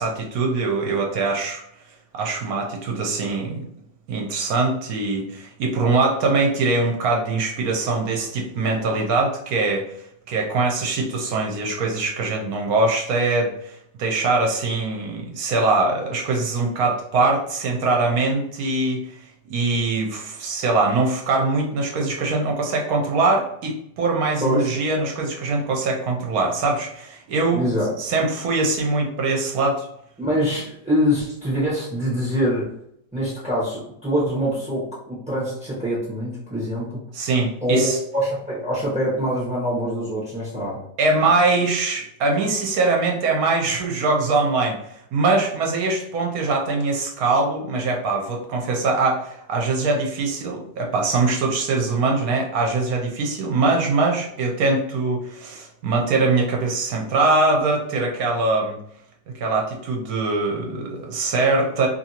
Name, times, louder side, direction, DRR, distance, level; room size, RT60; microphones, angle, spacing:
voice 1, 0.0-1.6 2.1-3.7 4.1-9.9 10.3-19.0 19.5-27.6 28.0-29.9 37.1-38.0 41.0-58.8 59.4-61.9, right 3 dB, 65° right, 0 dB, 1.0 m, -22 dB
voice 2, 24.4-24.7 27.5-27.9 30.2-32.6 33.1-37.0 37.6-40.8, equal, 10° right, -8 dB, 0.5 m, -24 dB
2.8 x 2.6 x 2.8 m, 0.75 s
omnidirectional pair, 1.9 m